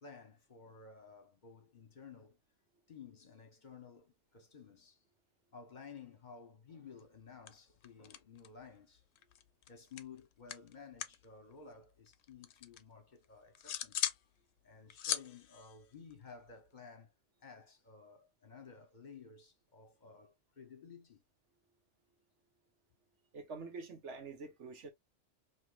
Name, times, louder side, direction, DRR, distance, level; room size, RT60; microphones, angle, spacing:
voice 1, 0.0-2.4 2.9-5.0 5.5-9.1 9.7-14.1 14.6-17.1 17.4-21.2, left 5 dB, 45° left, 1.0 m, -54 dB
sound 1, 7.0-7.2 7.5-8.7 9.0-11.2 11.5-12.8 13.2-14.2 14.6-16.7, left 11 dB, 70° left, 0.8 m, -41 dB
voice 2, 23.3-24.9, right 4 dB, 85° right, 1.4 m, -46 dB
4.5 x 2.9 x 2.4 m
omnidirectional pair, 1.2 m